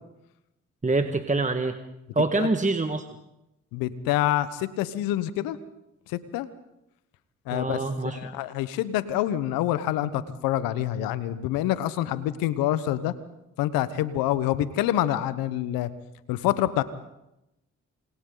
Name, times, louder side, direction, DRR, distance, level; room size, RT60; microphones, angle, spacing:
voice 1, 0.8-1.8 2.2-3.0 7.5-8.3, right 3 dB, 20° right, 7 dB, 1.8 m, -25 dB
voice 2, 3.7-5.6 6.1-6.5 7.5-13.1 13.6-15.9 16.3-16.8, left 13 dB, 80° left, 15 dB, 1.2 m, -26 dB
28.0 x 26.5 x 4.0 m, 0.88 s
hypercardioid pair, 45°, 34 cm